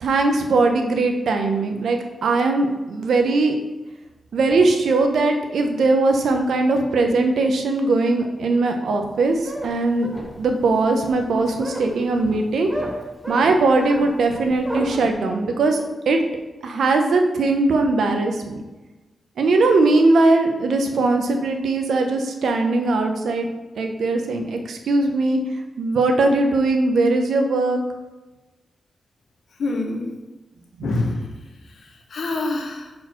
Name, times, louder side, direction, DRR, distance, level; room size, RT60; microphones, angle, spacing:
voice 1, 0.0-3.5 4.3-12.7 13.3-16.2 16.6-18.6 19.4-23.5 23.8-25.4 25.8-27.8 30.8-30.9, right 3 dB, 90° right, 4 dB, 0.8 m, -20 dB
sound 1, 9.1-15.1, equal, 10° right, 0.9 m, -32 dB
voice 2, 29.6-30.2 30.8-31.3 31.6-32.9, left 2 dB, 70° left, 3 dB, 1.0 m, -27 dB
4.9 x 4.4 x 5.7 m, 1.1 s
wide cardioid pair, 130°, 0 cm